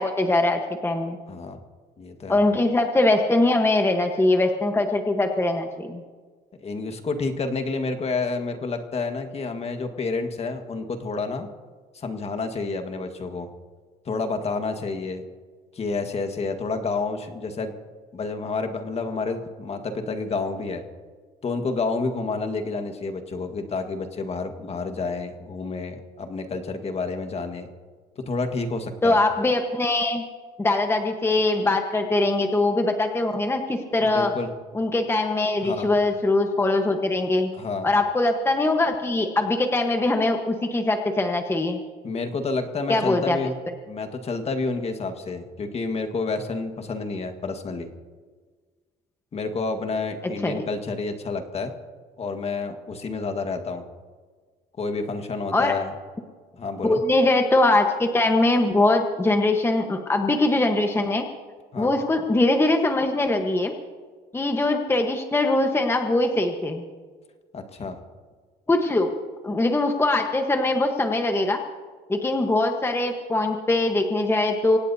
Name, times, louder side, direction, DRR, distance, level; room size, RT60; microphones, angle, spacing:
voice 1, 0.0-1.2 2.3-6.0 29.0-30.2 30.6-34.3 34.7-37.5 37.8-41.8 42.9-43.4 50.4-50.6 55.5-55.8 56.8-61.3 61.8-63.7 64.3-66.8 68.7-69.1 69.4-71.6 72.1-74.8, left 2 dB, 15° left, 4 dB, 1.3 m, -22 dB
voice 2, 1.3-1.6 2.0-2.4 6.6-11.5 11.9-13.5 14.0-15.2 15.7-17.7 18.1-20.8 21.4-27.7 28.2-29.2 34.0-34.5 35.6-35.9 37.5-37.9 42.0-43.6 43.9-47.9 49.3-51.7 52.2-53.8 54.8-55.9 56.5-57.0 61.7-62.0 67.5-68.0, left 3 dB, 40° left, 6 dB, 1.7 m, -29 dB
25.5 x 17.5 x 2.8 m, 1.5 s
cardioid pair, 110°, 17 cm